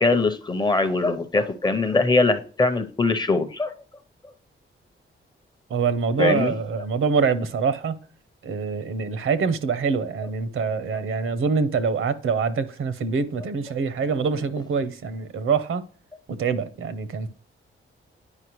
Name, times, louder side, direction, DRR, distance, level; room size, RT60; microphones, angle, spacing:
voice 1, 0.0-3.8 6.2-6.5, left 3 dB, 20° left, 0.6 m, -22 dB
voice 2, 5.7-8.0 8.4-15.8 16.4-17.3, right 5 dB, 75° right, 0.8 m, -25 dB
9.8 x 5.4 x 3.0 m
wide cardioid pair, 170°, 21 cm